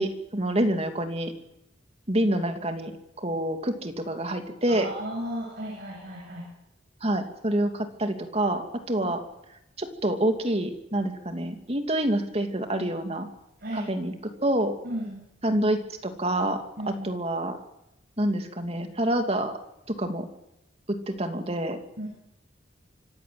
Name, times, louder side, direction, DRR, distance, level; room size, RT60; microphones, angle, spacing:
voice 1, 0.0-1.3 2.1-2.9 3.2-4.9 7.0-9.2 9.8-13.3 13.7-14.7 15.4-17.6 18.2-19.6 19.9-20.3 20.9-21.8, right 1 dB, 35° right, 6 dB, 2.8 m, -27 dB
voice 2, 4.7-6.5 9.0-9.1 13.6-13.9 14.8-15.2 16.8-17.1 22.0-22.1, equal, 55° right, -1 dB, 7.3 m, -34 dB
25.0 x 16.5 x 7.8 m, 0.88 s
head